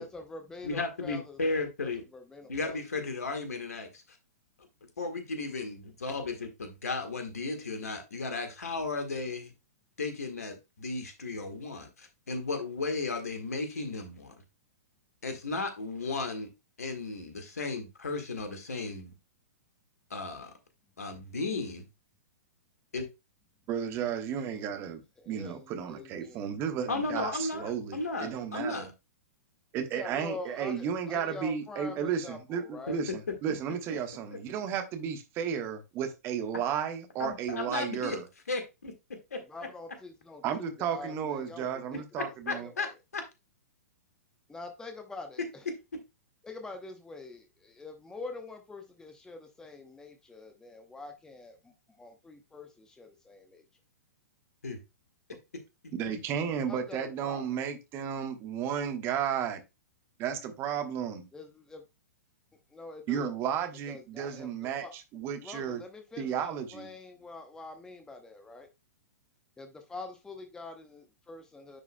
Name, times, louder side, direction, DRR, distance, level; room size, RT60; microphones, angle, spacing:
voice 1, 0.0-1.4 1.8-2.8 25.2-26.5 29.9-33.0 39.5-42.9 44.5-45.7 46.4-53.6 56.6-57.4 61.3-61.8 62.7-63.4 63.9-64.9 65.4-68.7 69.6-71.8, left 3 dB, 5° left, 0.8 m, -45 dB
voice 2, 0.6-2.0 2.5-4.0 5.0-9.5 10.0-14.4 15.2-16.5 16.8-19.1 20.1-20.5 21.0-21.9 22.9-23.1 26.9-28.9 33.1-33.2 34.3-34.4 37.2-38.2 38.5-38.9 39.3-39.4 42.2-43.2 54.6-54.8, left 3 dB, 65° left, 1.7 m, -35 dB
voice 3, 23.7-28.9 29.7-33.1 33.4-38.2 40.4-42.7 55.9-59.6 60.2-61.2 63.1-64.8 65.1-65.8 66.2-66.9, right 8 dB, 30° right, 1.2 m, -33 dB
9.9 x 4.8 x 2.2 m
figure-of-eight pair, 110°, 9 cm